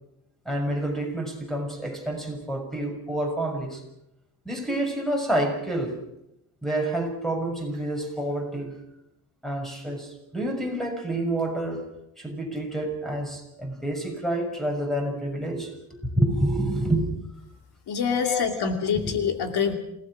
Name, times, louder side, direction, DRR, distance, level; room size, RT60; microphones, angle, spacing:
voice 1, 0.4-3.8 4.4-6.0 6.6-8.8 9.4-11.9 12.2-17.1 18.2-18.7 19.0-19.1, right 1 dB, ahead, 3 dB, 6.6 m, -28 dB
voice 2, 17.9-19.7, left 6 dB, 80° left, 5 dB, 2.8 m, -25 dB
28.0 x 18.0 x 6.4 m, 0.85 s
cardioid pair, 130°, 39 cm